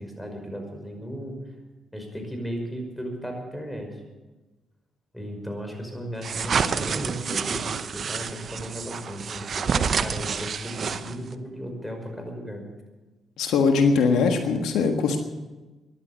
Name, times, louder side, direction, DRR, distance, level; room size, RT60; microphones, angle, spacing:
voice 1, 0.0-1.4 1.9-3.9 5.1-7.6 7.9-12.6, equal, 5° left, 4 dB, 5.6 m, -35 dB
sound 1, 6.2-11.3, right 6 dB, 55° right, 0.9 m, -28 dB
voice 2, 13.4-15.2, left 5 dB, 75° left, 5 dB, 1.5 m, -21 dB
14.5 x 11.0 x 8.0 m, 1.2 s
supercardioid pair, 55°, 0 cm